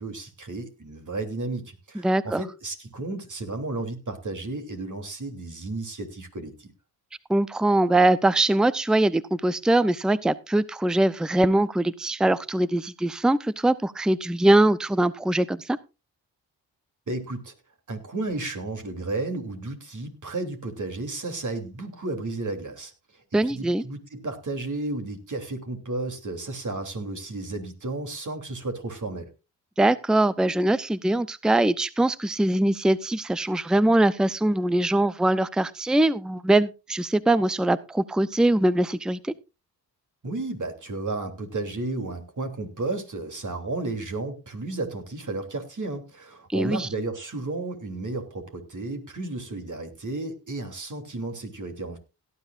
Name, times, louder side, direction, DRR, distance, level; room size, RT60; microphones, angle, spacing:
voice 1, 0.0-6.7 17.1-17.5 17.9-22.9 23.3-29.3 40.2-52.0, right 2 dB, 40° right, 5 dB, 3.2 m, -33 dB
voice 2, 2.0-2.4 7.3-15.8 23.3-23.8 29.8-39.3 46.5-46.9, right 1 dB, ahead, 17 dB, 0.7 m, -22 dB
17.5 x 10.5 x 2.5 m, 0.28 s
hypercardioid pair, 45°, 44 cm